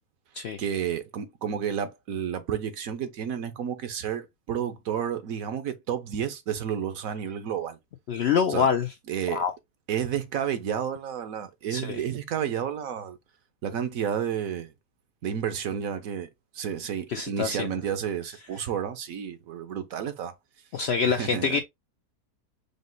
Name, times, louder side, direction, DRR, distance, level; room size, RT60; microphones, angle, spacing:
voice 1, 0.6-7.8 8.5-8.7 9.1-9.4 9.9-13.2 13.6-14.7 15.2-16.3 16.5-20.3 21.0-21.6, right 8 dB, 70° right, 1.2 m, -31 dB
voice 2, 8.1-8.9 9.3-9.5 11.7-12.0 17.1-17.7 18.6-18.7 20.7-21.6, left 6 dB, 70° left, 0.6 m, -25 dB
5.2 x 2.0 x 3.8 m
omnidirectional pair, 1.6 m